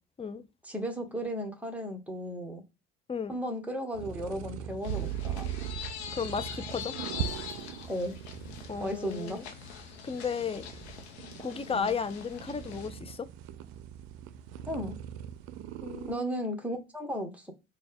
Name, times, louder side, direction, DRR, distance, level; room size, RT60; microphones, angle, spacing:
voice 1, 0.6-2.6 3.3-5.5 7.9-8.2 8.8-9.4 11.7-12.0 14.7-15.0 16.1-17.5, equal, 5° right, 1.2 m, -35 dB
sound 1, 3.9-16.1, right 10 dB, 70° right, 0.5 m, -40 dB
sound 2, 4.8-12.9, left 7 dB, 85° left, 0.8 m, -43 dB
voice 2, 6.1-6.9 8.7-9.4 10.0-10.6 11.4-13.3 15.8-16.4, left 6 dB, 20° left, 0.5 m, -34 dB
4.0 x 2.4 x 3.4 m
hypercardioid pair, 65°, 32 cm